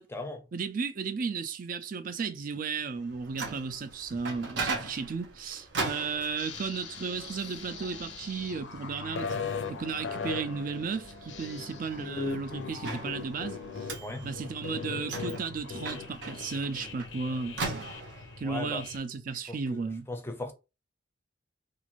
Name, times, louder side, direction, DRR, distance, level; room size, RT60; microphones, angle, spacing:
voice 1, 0.5-9.4 9.7-13.9 14.2-17.9 18.4-20.1, right 5 dB, 50° right, 0.4 m, -34 dB
Microwave oven, 3.0-18.4, right 3 dB, 80° right, 0.9 m, -40 dB
sound 1, 6.4-19.0, left 5 dB, 90° left, 0.5 m, -40 dB
voice 2, 18.4-18.8 19.5-19.8 20.1-20.5, left 2 dB, 15° left, 0.5 m, -37 dB
2.5 x 2.5 x 2.9 m
head